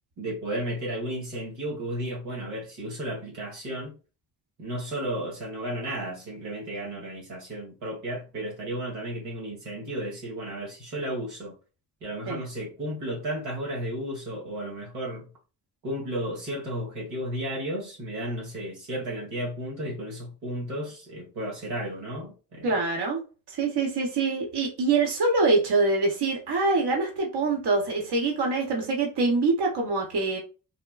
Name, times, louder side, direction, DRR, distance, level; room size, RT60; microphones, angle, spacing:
voice 1, 0.2-3.9 4.6-11.5 12.0-15.3 15.8-22.7, right 1 dB, 85° right, 1.5 m, -33 dB
voice 2, 22.6-23.2 23.5-30.4, right 3 dB, 55° right, 1.2 m, -24 dB
3.7 x 2.2 x 2.3 m
hypercardioid pair, 45°, 48 cm